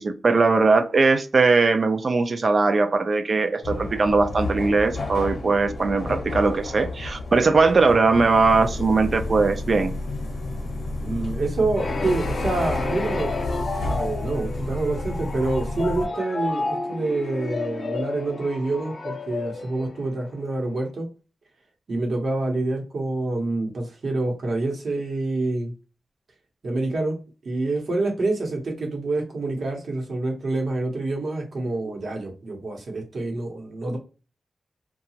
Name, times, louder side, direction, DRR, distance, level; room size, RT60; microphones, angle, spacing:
voice 1, 0.0-9.9, right 3 dB, 45° right, 8 dB, 0.4 m, -20 dB
sound 1, 3.6-16.1, left 2 dB, 75° left, 0.7 m, -31 dB
voice 2, 11.0-21.1 21.9-25.7 26.6-27.2 27.4-34.0, right 2 dB, 60° right, 1 dB, 1.0 m, -27 dB
sound 2, 11.8-20.5, left 3 dB, 35° left, 0.4 m, -31 dB
2.8 x 2.3 x 2.7 m, 0.32 s
wide cardioid pair, 155°, 0 cm